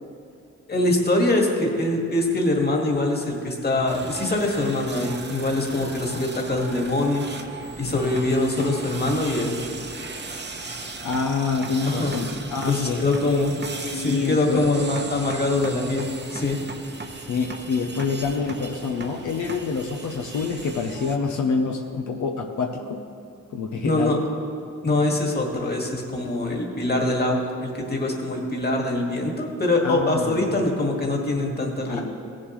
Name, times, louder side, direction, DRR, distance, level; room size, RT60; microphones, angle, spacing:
voice 1, 0.7-7.3 7.8-9.5 11.9-12.2 12.7-13.5 13.9-16.6 23.8-24.2 24.8-32.0, left 2 dB, 35° left, 0 dB, 1.9 m, -23 dB
sound 1, 3.9-21.2, right 3 dB, 35° right, 1.0 m, -37 dB
voice 2, 11.0-13.4 13.7-14.7 17.2-23.0 23.5-24.2 29.8-30.7 31.9-32.0, left 5 dB, 85° left, 1 dB, 0.8 m, -27 dB
15.5 x 7.3 x 3.2 m, 2.4 s
cardioid pair, 60°, 29 cm